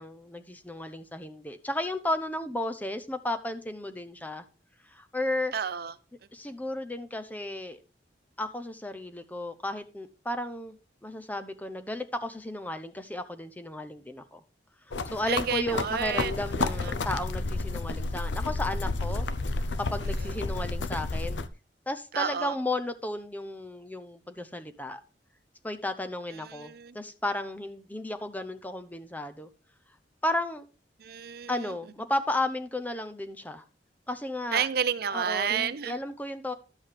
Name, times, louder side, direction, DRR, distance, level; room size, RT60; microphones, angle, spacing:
voice 1, 0.0-4.4 4.9-5.5 6.3-7.8 8.4-10.8 11.0-14.4 14.9-19.3 19.8-21.4 21.9-25.0 25.6-29.5 30.2-30.7 31.5-33.6 34.1-34.7 35.1-36.5, left 1 dB, 10° left, 0.7 m, -34 dB
voice 2, 5.5-5.9 15.3-16.3 16.8-16.9 22.1-22.6 26.4-27.0 31.0-31.7 34.5-36.0, right 7 dB, 60° right, 0.6 m, -30 dB
sound 1, 14.9-21.5, left 3 dB, 85° left, 0.7 m, -31 dB
11.5 x 7.8 x 3.4 m
head